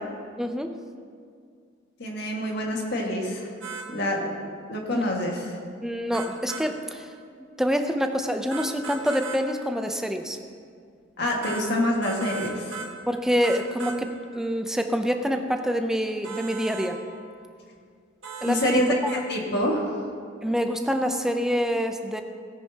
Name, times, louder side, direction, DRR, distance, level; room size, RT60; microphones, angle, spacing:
voice 1, 0.4-0.7 4.9-5.0 5.8-7.1 7.6-10.4 13.1-17.0 18.4-19.1 20.4-22.2, equal, ahead, 6 dB, 0.5 m, -26 dB
voice 2, 2.0-3.5 3.9-5.5 11.2-12.7 18.5-18.9 19.3-19.9, left 1 dB, 55° left, -1 dB, 1.8 m, -26 dB
sound 1, 3.6-3.9 6.1-6.7 8.5-9.4 11.4-11.6 12.0-12.9 13.4-14.0 16.2-16.9 18.2-18.8 19.1-19.2, right 5 dB, 65° right, 1.5 m, -36 dB
17.0 x 10.0 x 2.8 m, 2.2 s
head